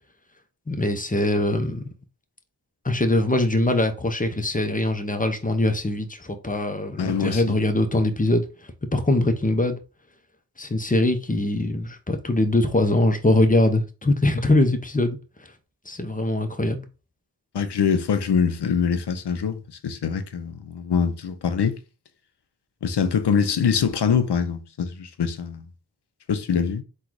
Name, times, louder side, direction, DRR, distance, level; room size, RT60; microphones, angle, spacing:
voice 1, 0.7-1.9 2.8-9.8 10.6-15.5 15.9-16.9, left 1 dB, 20° left, 0.7 m, -22 dB
voice 2, 7.0-7.5 17.5-21.8 22.8-25.7 26.3-26.8, left 6 dB, 85° left, 0.6 m, -24 dB
3.8 x 2.4 x 4.6 m
wide cardioid pair, 50°, 39 cm